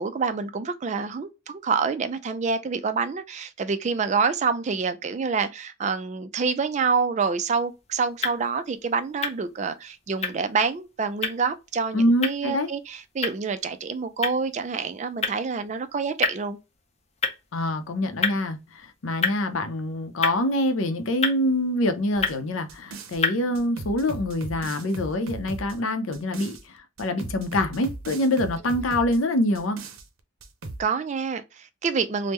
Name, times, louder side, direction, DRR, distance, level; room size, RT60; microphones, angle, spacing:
voice 1, 0.0-16.6 30.8-32.3, right 5 dB, 35° right, 0.3 m, -27 dB
sound 1, 7.4-23.5, left 5 dB, 30° left, 0.6 m, -34 dB
voice 2, 11.9-12.7 17.5-29.8, left 1 dB, 80° left, 0.6 m, -25 dB
sound 2, 22.1-23.2 23.5-26.6 27.0-29.2 29.5-30.0 30.4-30.8, right 2 dB, 85° right, 0.6 m, -38 dB
3.5 x 2.1 x 2.9 m
head